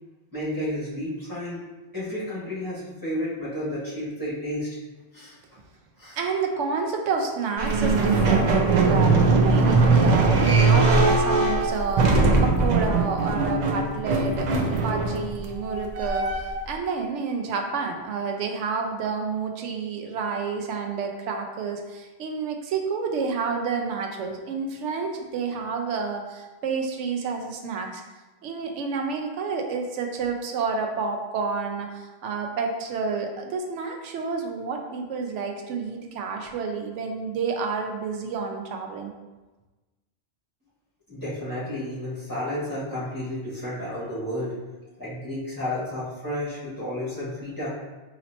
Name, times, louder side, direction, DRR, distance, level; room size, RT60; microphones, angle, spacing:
voice 1, 0.3-1.6 1.9-4.7 5.1-5.3 6.0-6.2 41.1-44.6 45.0-47.7, left 1 dB, 15° left, -10 dB, 1.5 m, -31 dB
voice 2, 6.2-28.0 28.4-39.1, right 5 dB, 85° right, 3 dB, 0.9 m, -29 dB
sound 1, 7.6-16.7, right 3 dB, 60° right, 0.4 m, -21 dB
4.1 x 3.0 x 2.8 m, 1.2 s
omnidirectional pair, 1.2 m